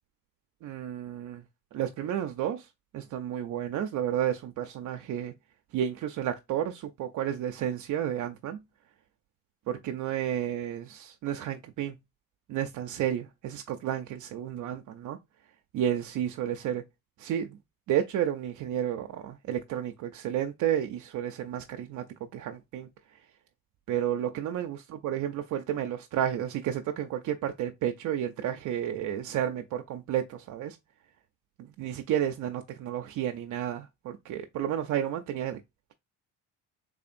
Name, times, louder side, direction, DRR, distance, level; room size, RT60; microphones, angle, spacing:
voice 1, 0.6-1.4 1.7-5.3 5.7-8.6 9.7-12.0 12.5-15.2 15.7-16.8 17.2-17.6 17.9-23.2 23.9-30.8 31.6-35.6, right 10 dB, 60° right, 0.5 m, -31 dB
3.7 x 3.4 x 2.5 m
cardioid pair, 125°, 33 cm